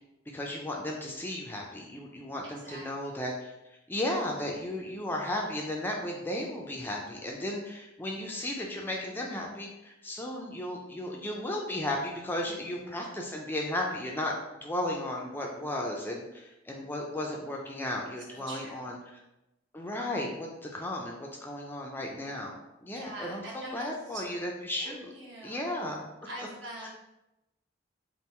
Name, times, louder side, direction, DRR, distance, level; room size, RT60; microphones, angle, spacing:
voice 1, 0.3-3.5 3.9-19.0 19.7-25.1 25.4-26.1 26.8-26.9, left 1 dB, 10° left, -1 dB, 0.4 m, -35 dB
voice 2, 12.4-12.8 18.3-18.8 22.9-24.2 24.8-25.6 26.2-26.9, right 1 dB, 65° right, -4 dB, 1.2 m, -44 dB
3.6 x 2.4 x 4.2 m, 0.95 s
head